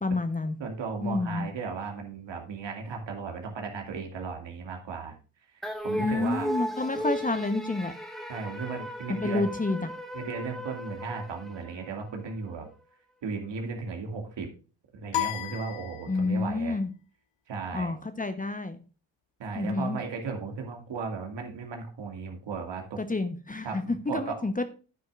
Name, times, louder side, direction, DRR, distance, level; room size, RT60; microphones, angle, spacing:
voice 1, 0.0-0.6 1.0-1.5 6.0-7.9 9.2-9.9 16.1-16.9 17.7-18.8 19.5-20.0 23.0-24.6, left 3 dB, 15° left, 1.0 m, -29 dB
voice 2, 0.6-5.2 5.8-6.5 8.3-9.5 10.1-12.7 13.2-14.5 14.9-16.8 17.5-18.0 19.4-23.0 23.6-24.4, right 5 dB, 60° right, 2.4 m, -36 dB
sound 1, 5.6-12.2, equal, ahead, 1.9 m, -36 dB
sound 2, 15.1-16.6, left 12 dB, 60° left, 1.3 m, -33 dB
9.4 x 9.3 x 2.5 m
hypercardioid pair, 50°, 49 cm